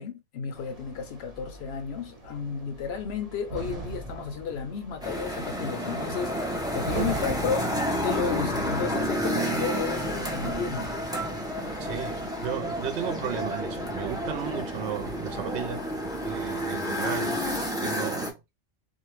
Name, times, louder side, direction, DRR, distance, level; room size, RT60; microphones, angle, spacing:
voice 1, 0.0-7.7 8.0-10.9, left 6 dB, 60° left, 0.8 m, -33 dB
sound 1, 0.5-17.7, right 2 dB, 35° right, 0.8 m, -42 dB
sound 2, 5.0-18.3, equal, 5° right, 0.3 m, -30 dB
voice 2, 11.8-15.9 16.3-17.4 17.8-18.4, right 8 dB, 65° right, 0.8 m, -34 dB
2.6 x 2.2 x 3.0 m
omnidirectional pair, 1.3 m